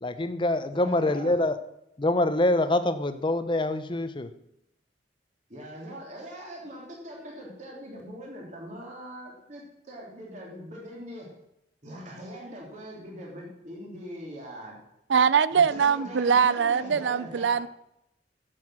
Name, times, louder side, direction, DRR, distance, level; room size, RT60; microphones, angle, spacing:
voice 1, 0.0-1.6 2.0-4.3, left 2 dB, 25° left, 0.7 m, -25 dB
voice 2, 0.7-1.4 5.5-11.3 11.8-14.8 15.5-17.6, equal, 40° right, 3.2 m, -42 dB
voice 3, 15.1-17.7, right 6 dB, 80° right, 0.5 m, -22 dB
10.5 x 7.7 x 6.2 m
head